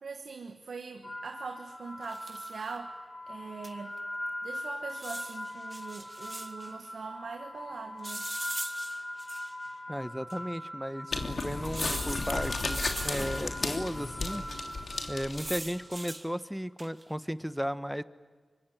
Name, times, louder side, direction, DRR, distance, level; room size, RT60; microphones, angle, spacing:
voice 1, 0.0-3.0 3.3-3.9 4.4-8.3, right 5 dB, 85° right, 5 dB, 1.4 m, -42 dB
sound 1, 1.0-16.2, left 1 dB, 35° left, 4.4 m, -41 dB
sound 2, 2.0-2.6 3.6-3.7 4.0-4.1 4.9-6.7 8.0-9.7 10.3-10.4 11.7-13.7 15.0-16.3 16.8-17.1, right 2 dB, 30° right, 2.7 m, -41 dB
voice 2, 9.9-14.4 15.1-18.0, equal, 5° right, 13 dB, 1.2 m, -35 dB
sound 3, 11.1-15.7, left 3 dB, 70° left, 3.0 m, -34 dB
25.0 x 23.0 x 10.0 m, 1.4 s
cardioid pair, 45°, 0 cm